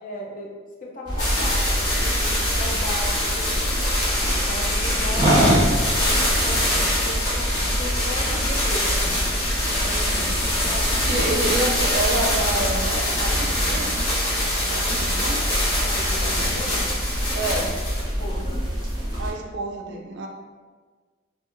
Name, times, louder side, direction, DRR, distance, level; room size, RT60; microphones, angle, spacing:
voice 1, 0.0-0.5 0.8-3.8 4.2-5.5 6.0-8.9 10.5-11.4 14.8-15.1 15.8-16.9 18.2-18.6, left 1 dB, 40° left, -2 dB, 0.4 m, -36 dB
sound 1, 1.1-19.3, equal, 20° right, 0.6 m, -26 dB
sound 2, 1.2-18.0 18.9-19.0, left 1 dB, 75° left, 1.1 m, -25 dB
voice 2, 9.7-10.3 11.1-14.0 14.7-15.4 17.3-17.7 19.2-20.3, right 2 dB, 60° right, 2 dB, 0.4 m, -28 dB
2.8 x 2.5 x 2.5 m, 1.4 s
head